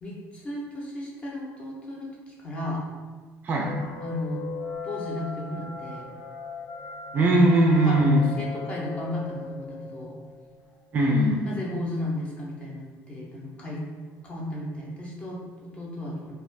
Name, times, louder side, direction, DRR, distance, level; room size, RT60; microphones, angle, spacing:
voice 1, 0.0-2.8 4.0-4.4 4.8-6.1 7.8-8.1 8.4-10.2 11.5-13.8 14.2-16.4, left 1 dB, 20° left, -4 dB, 0.7 m, -34 dB
sound 1, 3.6-11.0, left 4 dB, 55° left, 0.4 m, -39 dB
voice 2, 7.1-8.3 10.9-11.6, right 1 dB, 30° right, -2 dB, 0.4 m, -20 dB
2.4 x 2.3 x 3.2 m, 1.4 s
cardioid pair, 155°, 5 cm